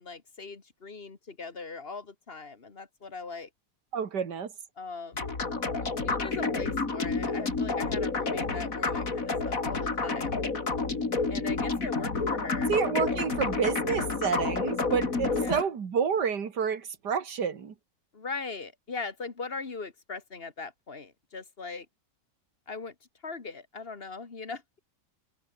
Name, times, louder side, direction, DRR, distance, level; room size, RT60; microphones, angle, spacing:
voice 1, 0.0-3.5 4.8-5.3 5.8-10.4 11.3-12.7 15.3-15.7 18.1-21.9 22.7-23.0 23.2-24.8, left 4 dB, 35° left, 1.9 m, -40 dB
voice 2, 3.9-4.5 12.7-17.7, right 6 dB, 70° right, 2.5 m, -29 dB
sound 1, 5.1-15.6, left 3 dB, 50° left, 3.5 m, -29 dB
omnidirectional pair, 1.9 m